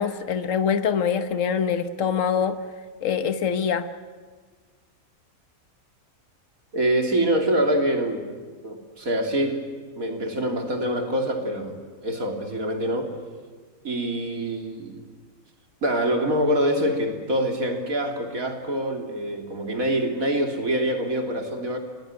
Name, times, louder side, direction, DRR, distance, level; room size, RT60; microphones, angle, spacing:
voice 1, 0.0-2.6 3.0-3.9, left 7 dB, 65° left, 9 dB, 1.5 m, -24 dB
voice 2, 6.7-8.3 8.6-9.6 10.0-13.2 13.8-15.0 15.8-21.8, right 1 dB, 80° right, 3 dB, 3.6 m, -25 dB
28.5 x 21.0 x 9.6 m, 1.5 s
omnidirectional pair, 1.4 m